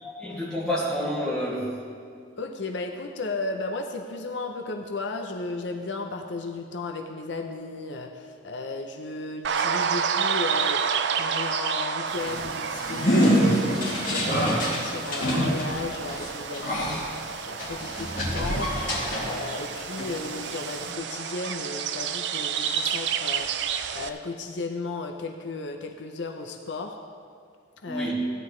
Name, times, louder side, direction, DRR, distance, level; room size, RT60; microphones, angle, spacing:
voice 1, 0.0-1.8 27.9-28.1, equal, 5° left, -7 dB, 2.2 m, -29 dB
voice 2, 2.4-18.7 19.1-26.9 27.8-28.1, left 3 dB, 65° left, 4 dB, 0.6 m, -35 dB
sound 1, 9.4-24.1, right 7 dB, 60° right, 0.4 m, -30 dB
sound 2, 12.1-19.7 20.0-20.9, equal, 45° left, 2.8 m, -26 dB
15.0 x 10.0 x 3.2 m, 2.2 s
head